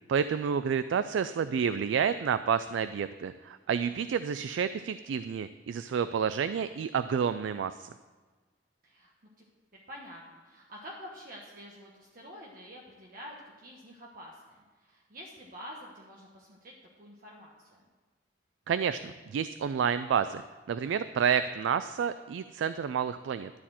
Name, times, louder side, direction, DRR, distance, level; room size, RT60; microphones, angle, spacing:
voice 1, 0.1-7.9 18.7-20.4 20.7-23.5, right 7 dB, 90° right, 12 dB, 0.3 m, -29 dB
voice 2, 3.9-4.4 8.8-9.4 9.7-17.9, equal, 50° right, -2 dB, 1.1 m, -48 dB
12.0 x 4.2 x 7.4 m, 1.3 s
head